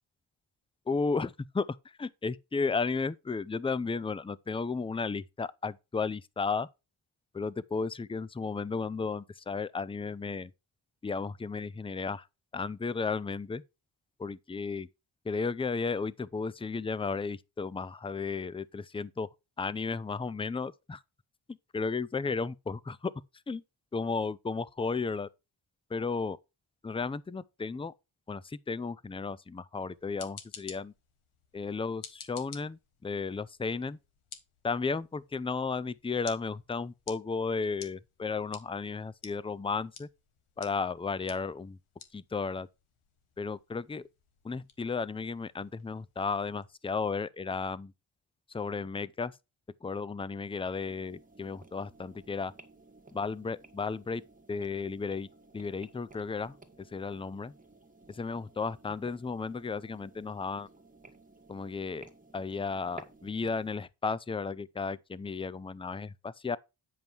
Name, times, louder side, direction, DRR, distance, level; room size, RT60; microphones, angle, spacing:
voice 1, 0.9-1.7 2.0-6.7 7.3-10.5 11.0-12.3 12.5-13.6 14.2-14.9 15.2-19.3 19.6-21.0 21.5-23.1 23.5-23.6 23.9-25.3 25.9-26.4 26.8-27.9 28.3-30.9 31.5-34.0 34.6-40.1 40.6-41.8 42.1-42.7 43.4-44.0 44.4-47.9 48.5-49.3 49.8-52.5 53.1-54.2 54.5-55.3 55.5-57.5 58.1-60.7 61.5-66.6, left 4 dB, 10° left, 0.4 m, -34 dB
sound 1, 29.9-46.7, left 7 dB, 75° left, 1.4 m, -53 dB
sound 2, 50.9-63.8, right 3 dB, 15° right, 1.5 m, -56 dB
9.4 x 5.3 x 4.4 m
cardioid pair, 80°, 50 cm